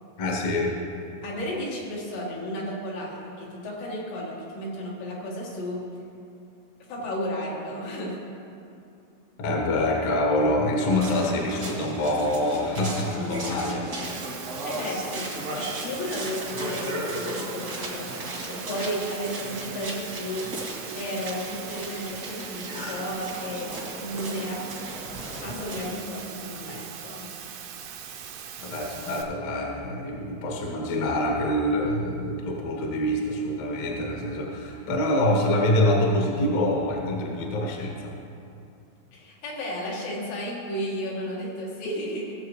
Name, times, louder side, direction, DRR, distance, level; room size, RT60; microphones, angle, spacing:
voice 1, 0.2-0.8 9.4-13.9 28.6-38.1, left 1 dB, 60° left, -1 dB, 1.7 m, -25 dB
voice 2, 1.2-5.8 6.9-8.2 14.4-20.5 20.9-24.6 25.4-27.3 39.1-42.3, equal, 85° left, -4 dB, 4.0 m, -33 dB
sound 1, 10.9-26.2, right 1 dB, 45° right, 1.2 m, -35 dB
Water, 14.0-29.2, right 8 dB, 80° right, 2.8 m, -41 dB
18.0 x 7.7 x 3.2 m, 2.6 s
omnidirectional pair, 4.8 m